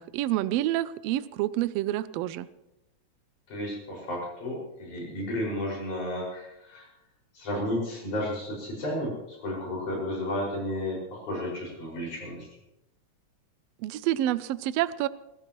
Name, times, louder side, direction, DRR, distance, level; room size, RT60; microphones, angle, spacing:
voice 1, 0.0-2.5 13.8-15.1, right 14 dB, 75° right, 16 dB, 1.5 m, -28 dB
voice 2, 3.5-6.9 7.3-12.5, left 1 dB, 90° left, -3 dB, 7.2 m, -32 dB
21.0 x 15.5 x 3.1 m, 0.93 s
omnidirectional pair, 3.3 m